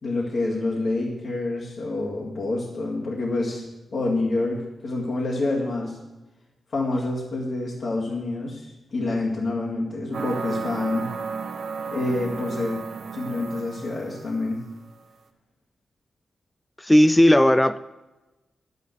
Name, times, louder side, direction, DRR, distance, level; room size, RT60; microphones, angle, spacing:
voice 1, 0.0-3.7 3.9-6.0 6.7-11.1 11.9-12.8 13.1-14.6, left 2 dB, 60° left, -4 dB, 2.1 m, -27 dB
sound 1, 10.1-14.5, right 5 dB, 75° right, 1.0 m, -33 dB
voice 2, 16.8-17.8, left 1 dB, 10° left, 13 dB, 0.3 m, -16 dB
10.5 x 6.8 x 8.1 m, 1.1 s
cardioid pair, 70°, 0 cm